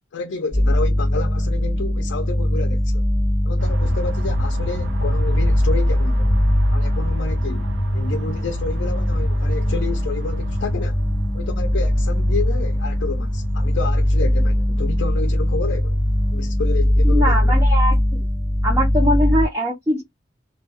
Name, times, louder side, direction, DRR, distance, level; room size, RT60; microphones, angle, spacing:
voice 1, 0.1-3.1 3.4-6.3 6.7-11.0 11.3-16.0 16.3-17.5, left 4 dB, 80° left, 0.4 m, -30 dB
sound 1, 0.5-19.5, left 1 dB, 50° right, 1.1 m, -20 dB
Singing sand dune, 3.6-16.5, equal, 80° right, 0.6 m, -32 dB
voice 2, 17.0-18.2 18.6-20.0, equal, 15° right, 0.6 m, -22 dB
2.2 x 2.2 x 2.7 m
head